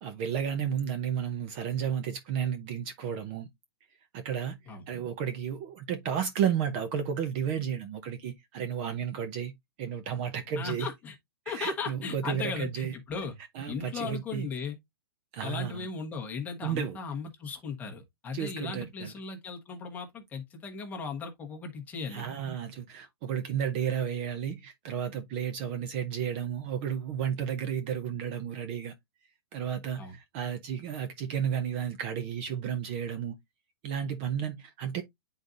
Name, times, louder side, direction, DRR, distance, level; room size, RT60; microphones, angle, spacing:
voice 1, 0.0-3.5 4.1-9.5 9.8-10.9 11.5-12.9 13.5-14.5 15.3-15.9 16.6-17.0 18.3-19.1 22.1-28.9 29.5-33.3 33.8-35.0, right 8 dB, 30° right, 0.5 m, -32 dB
voice 2, 10.6-11.2 11.4-13.4 13.7-14.8 15.4-22.3 30.0-30.2, left 5 dB, 10° left, 1.1 m, -37 dB
9.8 x 3.9 x 2.5 m
hypercardioid pair, 165°, 13 cm